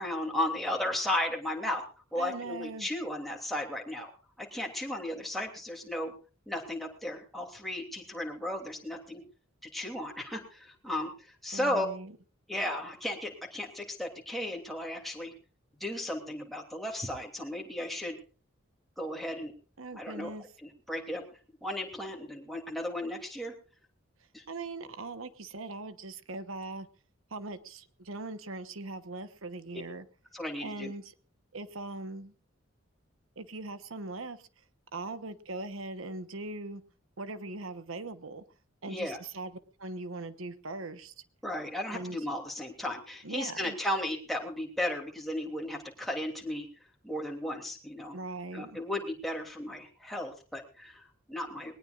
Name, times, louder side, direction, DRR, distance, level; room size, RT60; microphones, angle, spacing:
voice 1, 0.0-1.8 2.1-4.1 4.4-6.1 6.5-9.2 9.7-11.9 12.5-15.3 15.8-18.2 19.0-19.5 19.9-20.3 20.6-21.2 21.6-23.5 24.3-24.4 30.3-30.9 38.9-39.2 41.4-46.7 47.0-48.2 48.5-51.8, left 1 dB, ahead, 0 dB, 2.9 m, -35 dB
voice 2, 2.2-2.9 11.5-12.1 19.8-20.4 24.5-26.9 27.3-30.0 30.6-31.0 31.5-32.3 33.4-34.4 34.9-36.8 37.2-38.4 38.8-39.5 39.8-41.1 41.9-42.2 43.2-43.7 48.1-48.8, right 2 dB, 80° right, 11 dB, 1.2 m, -40 dB
20.5 x 19.0 x 2.5 m, 0.36 s
head